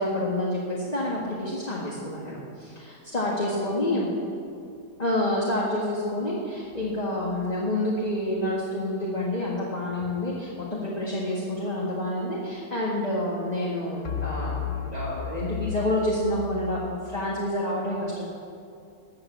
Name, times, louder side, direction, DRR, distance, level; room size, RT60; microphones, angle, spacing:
voice 1, 0.0-4.1 5.0-18.2, left 1 dB, 25° left, -5 dB, 2.0 m, -28 dB
sound 1, 6.7-7.6 14.0-17.1, left 6 dB, 45° left, 1.0 m, -34 dB
20.5 x 7.9 x 7.2 m, 2.5 s
omnidirectional pair, 1.9 m